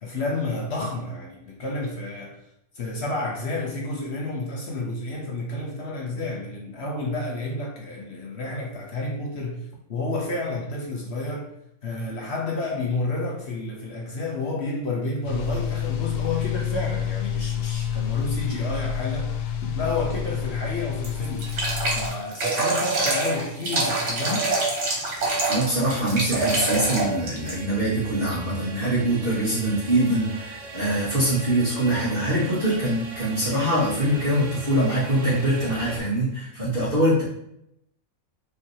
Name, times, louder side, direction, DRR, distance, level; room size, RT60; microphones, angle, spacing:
voice 1, 0.0-2.4 2.8-11.5 11.8-19.3 19.6-24.5, left 2 dB, 55° left, -1 dB, 0.8 m, -30 dB
sound 1, 15.2-22.1, left 8 dB, 85° left, 1.1 m, -28 dB
sound 2, 21.0-27.6, right 3 dB, 80° right, 1.7 m, -25 dB
sound 3, 24.7-36.0, right 3 dB, 60° right, 1.1 m, -41 dB
voice 2, 25.5-37.2, right 1 dB, 35° right, -13 dB, 2.1 m, -23 dB
4.8 x 3.3 x 2.8 m, 0.75 s
omnidirectional pair, 1.6 m